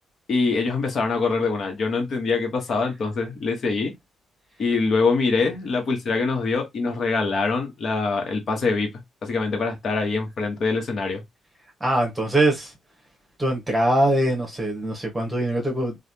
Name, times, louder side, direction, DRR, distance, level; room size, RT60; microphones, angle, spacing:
voice 1, 0.3-3.9 4.6-8.9 9.2-11.2, left 4 dB, 55° left, 1.2 m, -24 dB
voice 2, 11.8-12.7 13.4-16.0, right 1 dB, 15° right, 1.3 m, -22 dB
3.2 x 2.4 x 2.8 m
cardioid pair, 90°, 0 cm